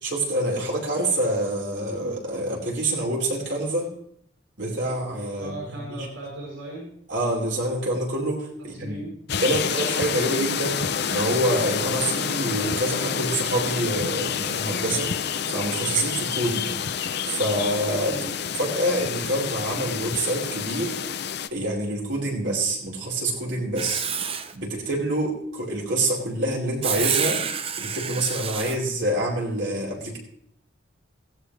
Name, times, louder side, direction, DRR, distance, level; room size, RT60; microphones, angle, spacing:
voice 1, 0.0-3.9 4.6-5.5 5.9-6.1 7.1-9.0 9.4-15.2 15.5-16.7 17.3-18.2 18.6-21.0 21.5-24.0 24.5-27.4 27.8-30.2, right 1 dB, 60° right, -2 dB, 4.7 m, -26 dB
voice 2, 5.4-6.9 8.7-9.1 18.1-18.3, right 1 dB, 85° right, -4 dB, 7.9 m, -37 dB
sound 1, 9.3-21.5, left 7 dB, 55° left, 0.7 m, -28 dB
Writing, 23.8-24.5 26.8-28.8, right 7 dB, 30° right, 0.8 m, -28 dB
17.0 x 15.5 x 3.4 m, 0.67 s
head